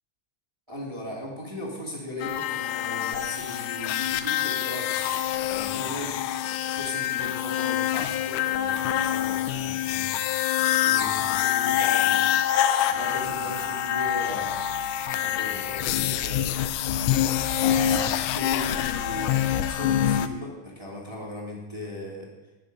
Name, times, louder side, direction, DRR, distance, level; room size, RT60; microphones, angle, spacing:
voice 1, 0.7-6.2 6.7-10.1 10.8-12.5 12.9-14.7 15.1-16.5 17.6-22.3, left 1 dB, 10° right, -3 dB, 2.1 m, -38 dB
sound 1, 2.2-20.3, left 11 dB, 75° left, 1.9 m, -26 dB
19.0 x 8.3 x 5.4 m, 1.1 s
omnidirectional pair, 3.8 m